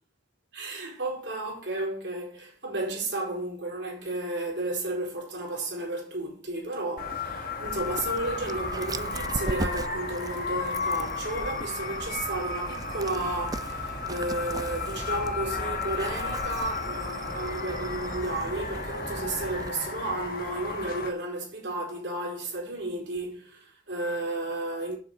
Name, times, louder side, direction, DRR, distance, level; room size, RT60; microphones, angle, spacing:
voice 1, 0.5-25.0, right 2 dB, 65° right, 4.3 m, -33 dB
sound 1, 7.0-21.1, left 4 dB, 50° left, 1.5 m, -34 dB
Dog, 7.6-19.7, right 2 dB, 20° right, 0.4 m, -38 dB
7.4 x 7.1 x 7.0 m
head